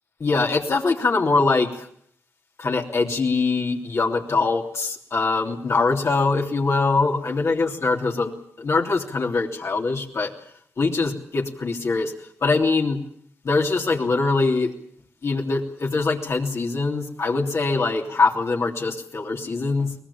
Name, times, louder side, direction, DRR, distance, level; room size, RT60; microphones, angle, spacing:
voice 1, 0.2-1.9 2.6-10.3 10.8-12.1 12.4-13.0 13.4-14.7 15.2-19.9, left 3 dB, 60° left, 0 dB, 3.3 m, -23 dB
23.5 x 19.0 x 8.7 m, 0.64 s
cardioid pair, 60°, 5 cm